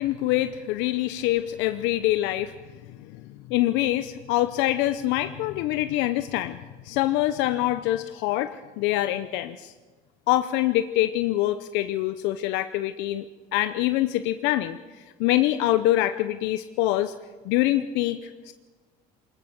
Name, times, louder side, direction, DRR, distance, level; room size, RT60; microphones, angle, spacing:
voice 1, 0.0-2.5 3.5-6.6 6.9-9.7 10.3-13.2 13.5-14.8 15.2-17.1 17.4-18.2 18.5-18.6, left 15 dB, 80° left, 11 dB, 0.8 m, -24 dB
20.5 x 20.0 x 6.8 m, 1.3 s
supercardioid pair, 95°, 18 cm